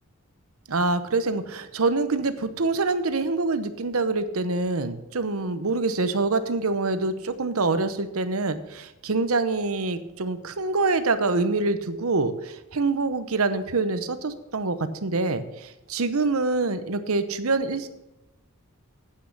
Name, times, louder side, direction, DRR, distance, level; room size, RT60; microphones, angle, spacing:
voice 1, 0.7-17.9, right 3 dB, 70° right, 11 dB, 0.9 m, -25 dB
8.6 x 8.4 x 6.0 m, 0.97 s
head